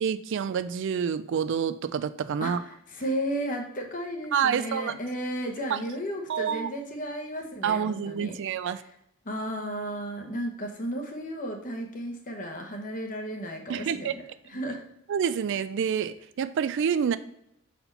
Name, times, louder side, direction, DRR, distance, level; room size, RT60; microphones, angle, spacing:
voice 1, 0.0-2.6 4.3-4.9 5.7-5.8 6.3-6.7 7.6-8.8 13.7-14.1 15.1-17.2, right 7 dB, 60° right, 13 dB, 0.3 m, -27 dB
voice 2, 2.4-8.4 9.2-14.8, equal, 40° left, 3 dB, 1.0 m, -34 dB
5.8 x 4.3 x 5.4 m, 0.78 s
head